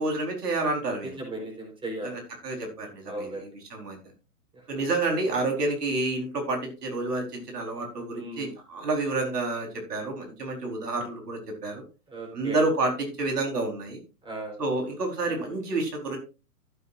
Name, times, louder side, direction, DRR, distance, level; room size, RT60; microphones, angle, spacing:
voice 1, 0.0-1.1 2.0-4.0 4.7-11.8 12.3-14.0 14.6-16.2, right 2 dB, 85° right, 2 dB, 4.4 m, -29 dB
voice 2, 1.0-2.1 3.1-3.4 8.2-8.5 12.1-12.6 14.2-14.6, right 2 dB, 10° right, 1 dB, 4.2 m, -36 dB
15.0 x 8.3 x 2.6 m, 0.31 s
hypercardioid pair, 135°, 46 cm